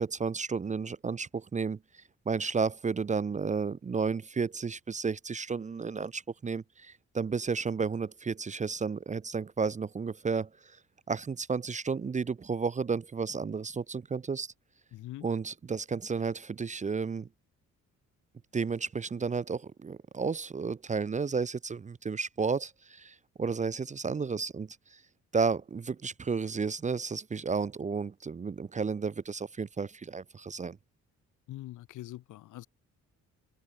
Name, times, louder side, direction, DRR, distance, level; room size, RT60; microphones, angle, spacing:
voice 1, 0.0-1.8 2.3-10.5 11.1-14.5 15.2-17.3 18.5-24.7 25.3-30.8, right 5 dB, 25° right, 0.6 m, -32 dB
voice 2, 14.9-15.3 31.5-32.7, left 15 dB, 85° left, 2.1 m, -43 dB
cardioid pair, 90°, 30 cm